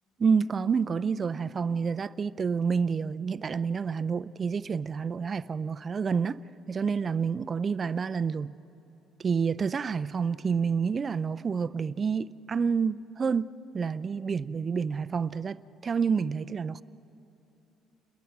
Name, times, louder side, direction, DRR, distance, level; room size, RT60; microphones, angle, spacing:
voice 1, 0.2-6.4 6.7-8.5 9.2-16.8, right 5 dB, 30° right, 0.5 m, -28 dB
29.5 x 22.0 x 6.0 m
cardioid pair, 140°, 0 cm